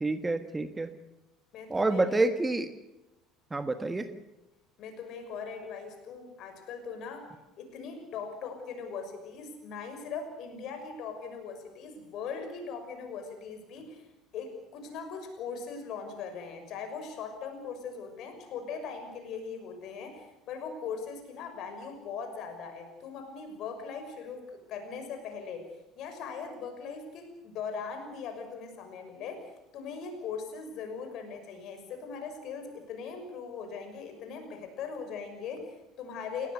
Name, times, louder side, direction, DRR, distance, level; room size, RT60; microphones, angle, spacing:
voice 1, 0.0-0.9 1.7-2.7 3.5-4.1, right 2 dB, 15° right, 9 dB, 1.5 m, -28 dB
voice 2, 1.5-2.0 4.8-7.3 7.6-14.1 14.3-25.7 26.0-36.5, left 5 dB, 50° left, 6 dB, 6.2 m, -40 dB
29.5 x 17.5 x 6.8 m, 0.95 s
figure-of-eight pair, 65°, 0 cm